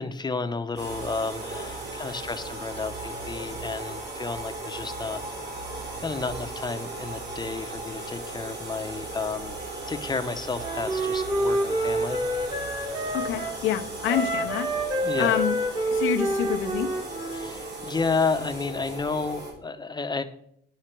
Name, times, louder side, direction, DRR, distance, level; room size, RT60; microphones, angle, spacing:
voice 1, 0.0-5.2 5.7-9.6 9.9-12.2 14.1-14.2 15.0-15.4 17.3-20.2, left 4 dB, 20° left, 9 dB, 0.8 m, -31 dB
sound 1, 0.8-19.5, right 2 dB, 60° right, 4.0 m, -37 dB
Wind instrument woodwind instrument, 10.6-13.6 14.0-17.5, right 1 dB, 25° right, 1.4 m, -28 dB
voice 2, 13.1-14.7 15.2-15.6 15.9-16.9, left 10 dB, 90° left, 4 dB, 0.7 m, -27 dB
10.0 x 5.7 x 4.5 m, 0.70 s
cardioid pair, 90°, 20 cm